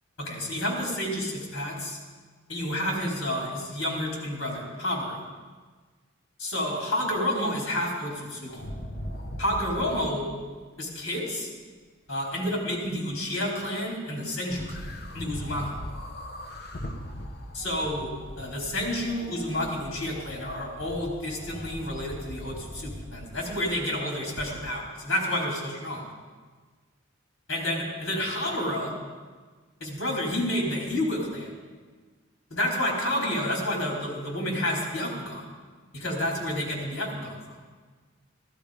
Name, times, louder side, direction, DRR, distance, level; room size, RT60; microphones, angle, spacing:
voice 1, 0.2-2.0 2.5-5.2 6.4-8.6 9.4-10.3 10.8-11.5 12.1-14.9 15.1-15.7 17.5-26.1 27.5-28.9 29.8-31.5 32.5-35.5 35.9-37.6, left 1 dB, 85° left, -1 dB, 4.4 m, -30 dB
sound 1, 8.5-10.0 14.5-23.8 24.4-24.5, equal, 50° left, 1.4 m, -40 dB
15.5 x 14.5 x 5.2 m, 1.4 s
head